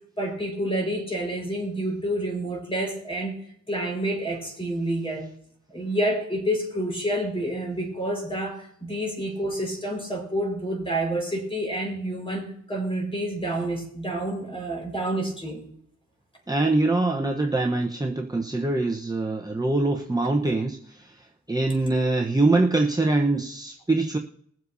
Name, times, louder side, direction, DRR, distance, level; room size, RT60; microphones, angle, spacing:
voice 1, 0.2-3.3 3.7-5.3 5.7-15.7, right 1 dB, 20° left, 0 dB, 4.9 m, -28 dB
voice 2, 16.5-24.2, right 2 dB, 15° right, 1 dB, 1.0 m, -24 dB
21.5 x 7.6 x 2.7 m, 0.67 s
cardioid pair, 75°, 30 cm